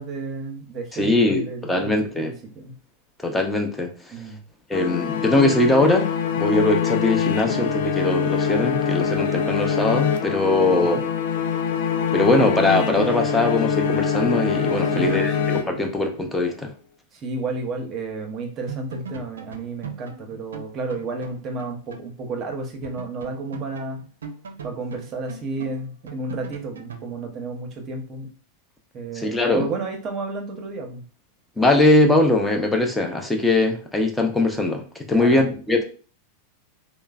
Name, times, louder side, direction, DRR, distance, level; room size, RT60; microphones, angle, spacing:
voice 1, 0.0-2.7 4.1-4.4 10.6-11.1 14.9-15.4 17.1-24.0 24.6-28.3 28.9-31.0 35.1-35.5, right 3 dB, 35° right, 2 dB, 0.7 m, -32 dB
voice 2, 0.9-2.3 3.2-3.9 4.7-11.0 12.1-16.7 29.1-29.6 31.6-35.8, left 2 dB, 10° left, 3 dB, 0.6 m, -21 dB
sound 1, 4.7-16.2, left 7 dB, 70° left, 0.4 m, -24 dB
sound 2, 18.3-18.4 18.7-22.1 22.4-22.5 22.8-27.1, right 5 dB, 85° right, 0.4 m, -39 dB
3.0 x 2.0 x 2.3 m, 0.39 s
hypercardioid pair, 105°, 0 cm